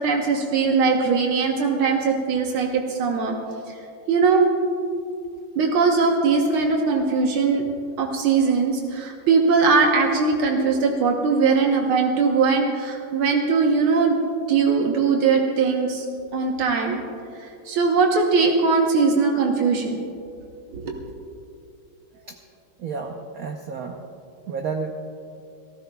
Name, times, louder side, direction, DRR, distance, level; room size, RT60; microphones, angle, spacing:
voice 1, 0.0-3.4 3.7-3.8 4.1-4.5 5.6-7.6 8.0-14.2 14.5-16.1 16.3-17.0 17.4-20.1 20.7-20.9, right 4 dB, 85° right, 1 dB, 1.9 m, -20 dB
voice 2, 22.8-24.0 24.5-24.9, right 5 dB, 60° right, 3 dB, 0.9 m, -31 dB
29.0 x 14.5 x 2.3 m, 2.5 s
omnidirectional pair, 2.3 m